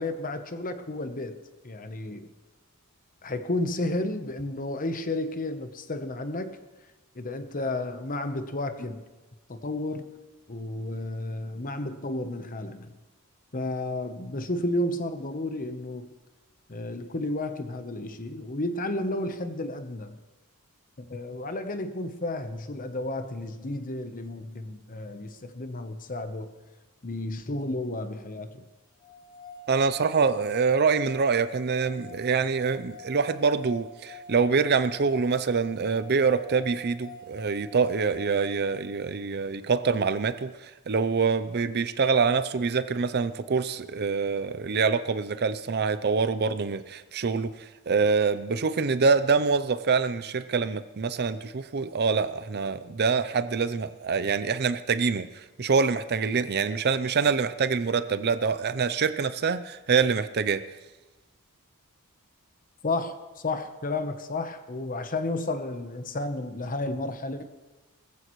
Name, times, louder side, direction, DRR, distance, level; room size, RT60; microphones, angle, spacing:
voice 1, 0.0-1.4 1.6-2.3 3.2-6.6 7.1-9.0 9.5-10.2 10.5-12.9 13.5-16.1 16.7-20.2 21.0-26.5 27.0-28.6 62.8-67.4, left 2 dB, 40° left, 9 dB, 0.9 m, -32 dB
sound 1, 29.0-39.1, left 3 dB, 20° left, 1.5 m, -47 dB
voice 2, 29.7-60.6, right 5 dB, 45° right, 13 dB, 0.5 m, -25 dB
20.0 x 14.5 x 3.1 m, 1.2 s
head